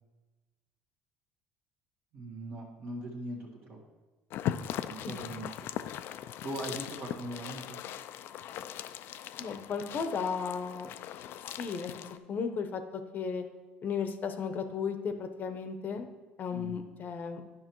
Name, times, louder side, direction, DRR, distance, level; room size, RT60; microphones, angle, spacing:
voice 1, 2.1-3.8 4.9-5.7 6.4-7.8 16.5-16.8, right 1 dB, 55° right, -3 dB, 1.4 m, -40 dB
sound 1, 4.3-12.2, left 11 dB, 60° left, 0.3 m, -39 dB
voice 2, 9.4-10.9 11.6-12.8 13.1-13.4 13.8-16.1 16.4-17.4, left 6 dB, 45° left, 7 dB, 0.7 m, -35 dB
10.0 x 5.6 x 3.0 m, 1.3 s
supercardioid pair, 90°, 4 cm